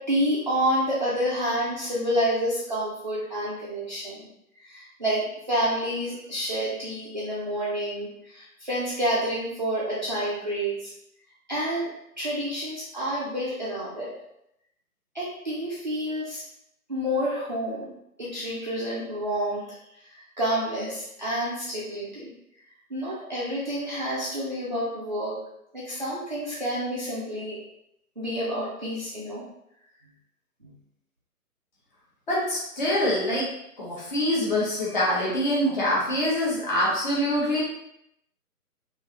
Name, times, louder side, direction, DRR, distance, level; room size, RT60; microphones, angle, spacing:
voice 1, 0.0-4.3 4.6-10.9 11.5-11.9 12.2-14.1 15.1-16.4 16.9-17.9 18.2-19.6 20.0-22.3 22.9-25.3 25.7-27.6 28.2-29.4 30.6-30.7, equal, 30° right, -9 dB, 0.5 m, -29 dB
voice 2, 32.3-33.5 33.8-37.6, left 1 dB, 30° left, -6 dB, 1.0 m, -25 dB
3.2 x 2.7 x 2.4 m, 0.80 s
figure-of-eight pair, 140°, 46 cm